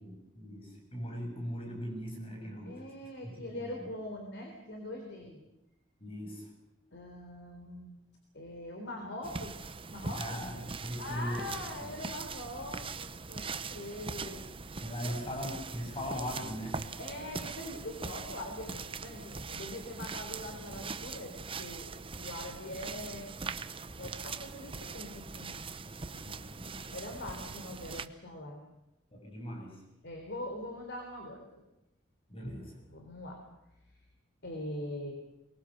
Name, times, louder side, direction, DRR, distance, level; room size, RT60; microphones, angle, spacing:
voice 1, 0.0-2.9 3.2-3.9 6.0-6.5 10.2-11.5 11.8-12.1 14.8-16.8 25.8-27.2 29.1-29.9 32.3-32.9, equal, 30° left, 1 dB, 6.9 m, -40 dB
voice 2, 2.7-5.4 6.9-8.0 8.3-10.2 11.0-14.4 15.0-15.1 17.0-23.3 24.0-25.6 26.9-28.7 30.0-31.6 32.9-33.4 34.4-35.1, left 1 dB, 65° left, 2 dB, 3.8 m, -42 dB
sound 1, 9.2-28.1, right 4 dB, 30° right, 0.8 m, -42 dB
23.0 x 21.0 x 6.6 m, 0.92 s
head